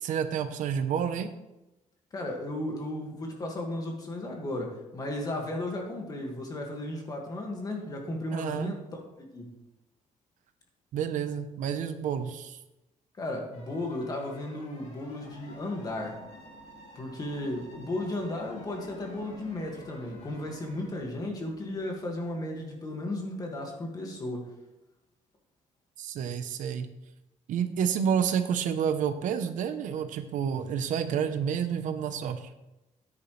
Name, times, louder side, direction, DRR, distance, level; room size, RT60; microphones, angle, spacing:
voice 1, 0.0-1.3 8.3-8.7 10.9-12.6 26.0-26.9 27.5-32.5, right 8 dB, 85° right, 9 dB, 1.0 m, -29 dB
voice 2, 2.1-9.0 9.3-9.6 13.2-16.2 17.0-24.5, left 1 dB, 30° left, 1 dB, 2.2 m, -35 dB
sound 1, 13.5-20.9, right 1 dB, 65° left, 4.8 m, -52 dB
sound 2, 15.2-22.6, left 4 dB, 45° left, 2.0 m, -52 dB
14.0 x 9.8 x 3.4 m, 0.97 s
cardioid pair, 160°, 13 cm